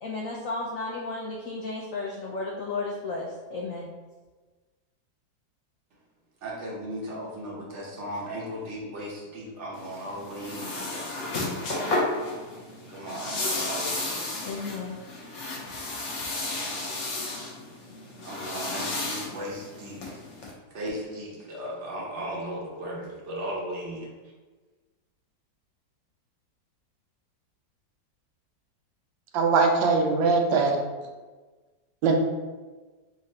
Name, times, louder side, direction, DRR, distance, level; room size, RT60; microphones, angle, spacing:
voice 1, 0.0-3.9 14.4-15.0 15.8-16.2, left 3 dB, 85° left, -2 dB, 0.7 m, -34 dB
voice 2, 6.4-11.1 12.9-14.3 18.2-20.2 20.7-24.1, equal, 55° right, -3 dB, 0.9 m, -36 dB
sound 1, 9.7-20.5, left 2 dB, 55° left, 0.9 m, -33 dB
voice 3, 29.3-30.8 32.0-32.2, right 4 dB, 85° right, 3 dB, 1.4 m, -21 dB
3.7 x 2.5 x 4.2 m, 1.3 s
omnidirectional pair, 2.0 m